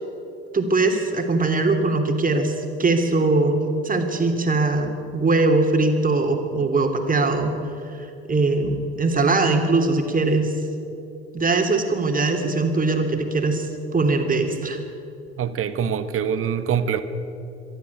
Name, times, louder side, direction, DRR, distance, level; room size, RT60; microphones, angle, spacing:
voice 1, 0.5-7.6 8.3-10.6 11.3-14.8, right 3 dB, 25° right, 4 dB, 3.1 m, -21 dB
voice 2, 15.4-17.0, right 8 dB, 40° right, 11 dB, 1.5 m, -24 dB
23.0 x 13.5 x 8.3 m, 2.8 s
figure-of-eight pair, 60°, 32 cm